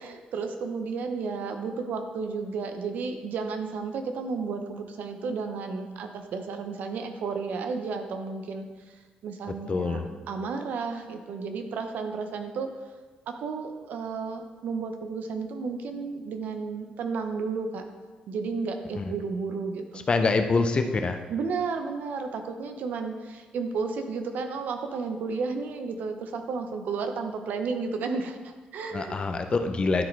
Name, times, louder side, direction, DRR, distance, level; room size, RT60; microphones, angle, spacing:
voice 1, 0.0-12.7 13.3-17.8 18.3-20.1 21.3-29.2, right 4 dB, 75° right, 6 dB, 0.8 m, -33 dB
voice 2, 9.7-10.0 18.9-19.1 20.1-21.2 28.9-30.0, left 3 dB, 35° left, 6 dB, 0.7 m, -25 dB
12.0 x 4.0 x 4.5 m, 1.4 s
cardioid pair, 105°, 3 cm